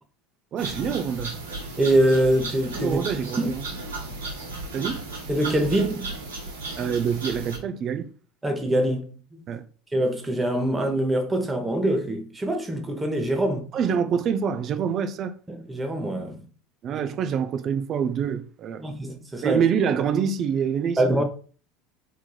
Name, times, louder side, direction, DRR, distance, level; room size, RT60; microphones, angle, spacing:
voice 1, 0.5-1.4 2.8-3.6 4.7-5.1 6.8-8.1 9.5-9.6 13.7-15.3 16.8-18.8 19.4-21.2, right 7 dB, 45° right, 0.4 m, -26 dB
sound 1, 0.6-7.6, right 2 dB, 85° right, 1.3 m, -35 dB
voice 2, 1.8-3.0 3.4-3.5 5.3-6.2 8.4-9.5 9.9-13.7 15.5-16.4 16.9-17.0 18.8-19.6 21.0-21.2, right 1 dB, 15° right, 0.8 m, -24 dB
3.5 x 3.2 x 2.2 m
hypercardioid pair, 80°, 0 cm